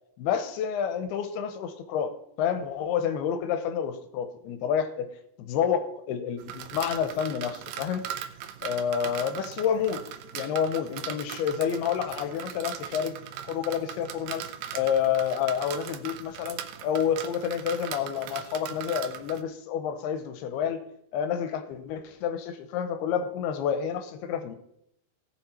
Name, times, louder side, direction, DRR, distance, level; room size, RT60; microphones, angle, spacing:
voice 1, 0.2-8.1 8.6-10.1 10.3-13.2 13.5-14.5 14.7-20.8 21.1-24.6, left 8 dB, 85° left, 9 dB, 2.9 m, -29 dB
sound 1, 6.4-19.4, right 10 dB, 85° right, 2.8 m, -39 dB
17.0 x 6.5 x 4.4 m, 0.74 s
omnidirectional pair, 4.5 m